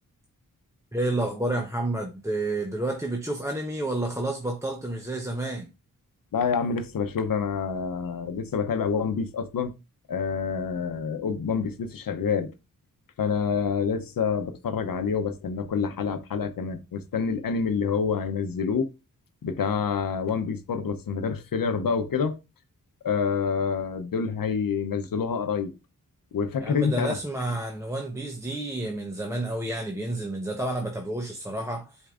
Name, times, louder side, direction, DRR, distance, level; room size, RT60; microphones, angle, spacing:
voice 1, 0.9-5.7 26.6-32.0, right 1 dB, 10° right, 0.8 m, -30 dB
voice 2, 6.3-9.7 10.1-12.5 13.2-18.9 19.4-22.4 23.0-25.7 26.3-27.2, left 6 dB, 80° left, 0.8 m, -27 dB
10.5 x 4.5 x 2.5 m
wide cardioid pair, 110°, 33 cm